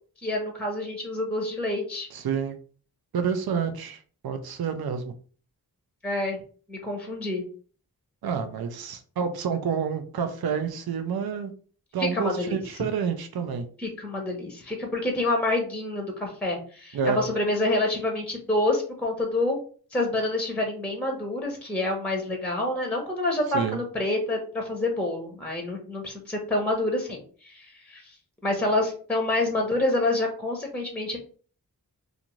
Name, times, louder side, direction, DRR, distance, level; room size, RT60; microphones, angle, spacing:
voice 1, 0.2-2.1 6.0-6.4 6.7-7.4 12.0-12.6 13.8-19.6 19.9-28.0 28.4-31.2, left 2 dB, 5° left, 2 dB, 0.7 m, -27 dB
voice 2, 2.1-2.6 3.1-5.1 8.2-11.5 11.9-13.7 16.9-17.2 23.5-23.8, right 6 dB, 70° right, 7 dB, 0.5 m, -28 dB
2.5 x 2.5 x 3.0 m, 0.42 s
wide cardioid pair, 65°, 38 cm